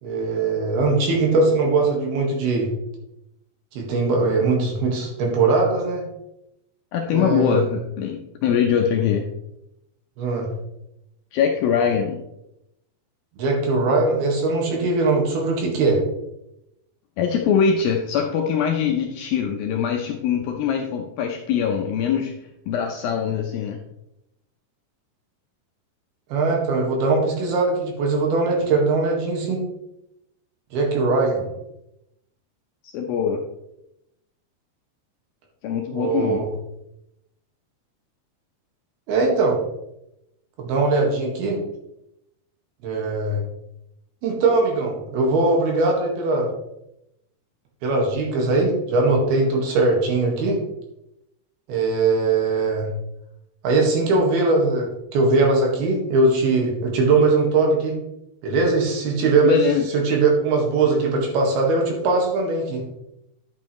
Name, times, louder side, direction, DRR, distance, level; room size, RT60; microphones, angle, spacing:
voice 1, 0.0-2.7 3.7-6.0 7.1-7.7 10.2-10.5 13.4-16.0 26.3-29.6 30.7-31.5 35.9-36.5 39.1-39.6 40.6-41.6 42.8-43.4 44.2-46.5 47.8-50.6 51.7-52.9 53.6-58.0 58.4-62.8, right 3 dB, 70° right, 0 dB, 3.5 m, -20 dB
voice 2, 6.9-9.3 11.3-12.2 17.2-22.3 22.7-23.8 32.9-33.4 35.6-36.4 59.4-59.9, left 7 dB, 75° left, 2 dB, 2.2 m, -22 dB
11.5 x 7.4 x 3.1 m, 0.85 s
omnidirectional pair, 4.9 m